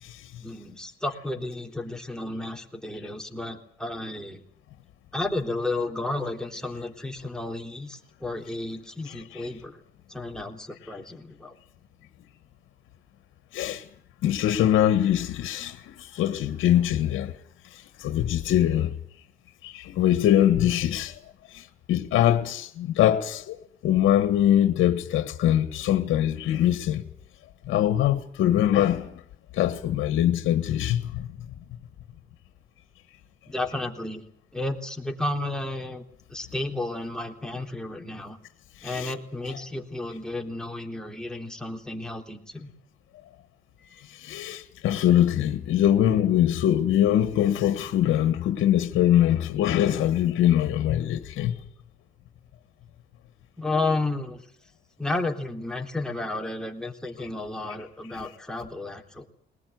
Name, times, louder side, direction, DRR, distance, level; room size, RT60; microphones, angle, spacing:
voice 1, 0.4-4.4 5.1-9.8 10.1-11.5 33.5-34.2 34.5-36.0 36.3-38.4 38.8-42.7 53.6-54.4 55.0-59.3, left 2 dB, 5° left, 3.6 m, -32 dB
voice 2, 9.1-9.4 13.5-13.8 14.2-17.3 18.0-18.9 19.6-21.1 21.5-21.6 21.9-23.6 23.8-27.0 27.7-29.1 29.5-31.3 38.8-39.1 44.2-51.5 57.2-57.3, left 11 dB, 85° left, 1.7 m, -23 dB
22.0 x 19.5 x 9.6 m
cardioid pair, 90°, 20 cm